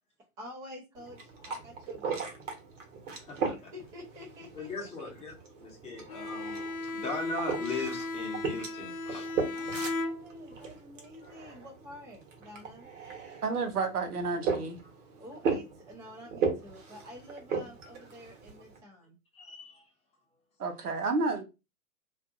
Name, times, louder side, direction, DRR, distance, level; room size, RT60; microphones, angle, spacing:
voice 1, 0.4-2.3 3.6-5.1 9.5-12.9 15.2-19.2, left 1 dB, 10° right, 0.4 m, -49 dB
sound 1, 1.0-18.8, right 5 dB, 55° right, 1.2 m, -38 dB
voice 2, 3.1-3.7 4.5-5.3 5.6-9.3 19.3-19.9, left 3 dB, 15° left, 0.8 m, -39 dB
Bowed string instrument, 6.1-10.7, left 2 dB, 75° left, 0.7 m, -36 dB
voice 3, 13.4-14.8 20.6-21.4, right 3 dB, 90° right, 0.9 m, -30 dB
2.5 x 2.5 x 2.5 m
hypercardioid pair, 120°, 44 cm